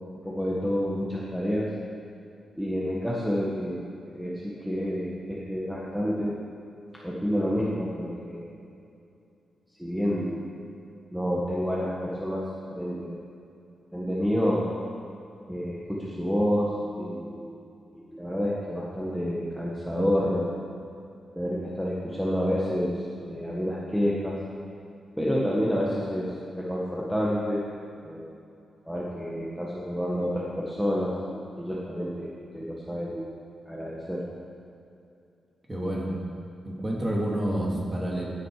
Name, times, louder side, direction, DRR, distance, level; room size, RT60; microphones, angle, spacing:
voice 1, 0.2-1.7 2.6-3.9 4.2-6.4 6.9-8.5 9.8-10.4 11.1-12.5 12.7-13.2 13.9-14.6 15.5-17.5 17.9-20.5 21.3-24.4 25.2-27.6 28.0-28.3 28.8-33.3 33.7-34.2, equal, ahead, -5 dB, 1.5 m, -29 dB
voice 2, 35.7-36.1 36.6-38.2, right 1 dB, 20° right, -3 dB, 2.6 m, -28 dB
15.0 x 9.5 x 4.9 m, 2.6 s
wide cardioid pair, 130°, 0 cm